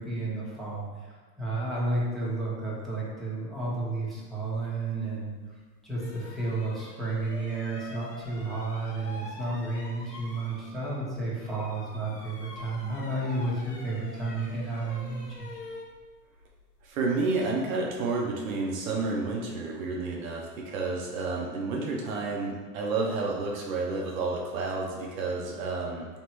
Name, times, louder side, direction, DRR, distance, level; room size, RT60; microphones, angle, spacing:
voice 1, 0.0-5.3 5.8-15.5, right 2 dB, ahead, -8 dB, 1.1 m, -32 dB
sound 1, 5.3-5.4 5.9-11.1 11.4-17.5, left 2 dB, 85° left, 1.1 m, -46 dB
voice 2, 16.8-26.1, right 3 dB, 60° right, -2 dB, 0.8 m, -30 dB
3.2 x 3.0 x 4.5 m, 1.4 s
figure-of-eight pair, 90°, 48 cm